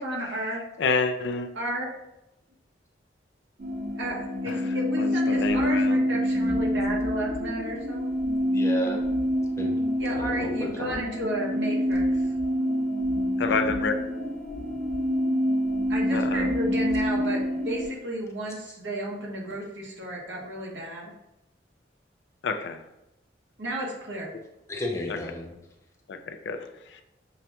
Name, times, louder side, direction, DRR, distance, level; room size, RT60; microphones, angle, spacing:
voice 1, 0.0-0.6 1.5-1.9 4.0-8.0 10.0-12.4 15.9-21.1 23.6-24.3, right 1 dB, 80° right, 1.0 m, -33 dB
voice 2, 0.8-1.5 5.0-6.0 13.4-14.3 16.1-16.5 22.4-22.8 26.1-26.7 26.9-27.0, left 4 dB, 70° left, 0.4 m, -28 dB
sound 1, 3.6-17.9, equal, 45° right, 0.8 m, -26 dB
voice 3, 8.5-9.0 9.6-9.8 10.2-11.0 24.7-25.6, left 1 dB, 15° left, 0.5 m, -32 dB
6.1 x 2.2 x 2.8 m
head